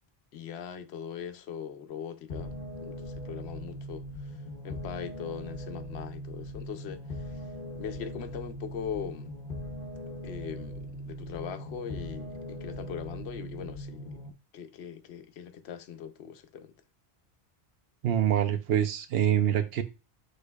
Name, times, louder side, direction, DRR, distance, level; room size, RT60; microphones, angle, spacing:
voice 1, 0.3-7.5 7.8-9.3 10.2-14.2 14.5-16.7, left 8 dB, 80° left, 0.8 m, -41 dB
sound 1, 2.3-14.3, equal, 60° left, 1.0 m, -40 dB
voice 2, 18.0-19.8, right 10 dB, 75° right, 0.8 m, -25 dB
6.2 x 3.3 x 2.2 m
omnidirectional pair, 1.1 m